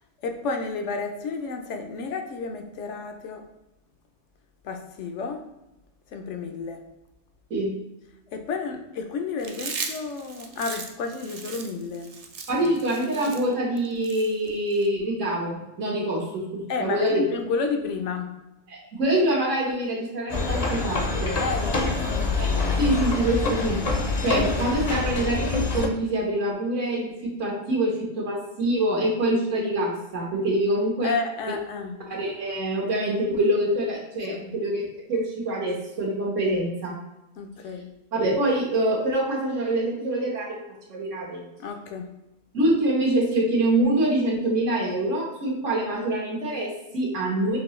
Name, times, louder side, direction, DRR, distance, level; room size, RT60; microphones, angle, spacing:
voice 1, 0.2-3.4 4.6-5.4 6.1-6.9 8.3-12.1 16.7-18.4 21.4-22.8 31.0-32.0 34.3-34.5 37.4-37.9 41.6-42.1, left 4 dB, 75° left, 5 dB, 1.0 m, -31 dB
Chewing mastication, 9.4-14.9, right 4 dB, 55° right, 0.4 m, -37 dB
voice 2, 12.5-17.2 18.7-21.4 22.4-22.5 22.8-23.8 24.2-31.1 31.5-31.6 32.1-37.0 38.1-40.6 40.9-41.4 42.5-47.6, right 1 dB, 80° right, -2 dB, 1.6 m, -25 dB
sound 1, 20.3-25.9, left 3 dB, 40° left, 0.6 m, -26 dB
6.1 x 2.8 x 3.1 m, 0.93 s
omnidirectional pair, 1.3 m